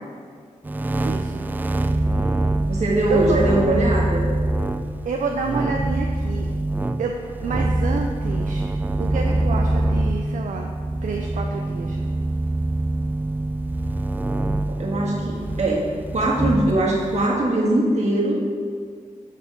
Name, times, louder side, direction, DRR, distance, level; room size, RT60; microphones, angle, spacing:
sound 1, 0.6-17.3, right 1 dB, 15° right, 0.3 m, -24 dB
voice 1, 1.0-1.5 1.9-2.0 3.1-3.4 3.6-3.7 5.0-6.5 7.0-7.1 7.4-8.6 9.0-10.7 11.0-12.0, right 4 dB, 75° right, 2 dB, 0.5 m, -28 dB
voice 2, 2.7-4.2 14.8-18.3, right 1 dB, 60° right, -3 dB, 1.7 m, -21 dB
7.2 x 4.3 x 5.3 m, 2.1 s
cardioid pair, 70°, 13 cm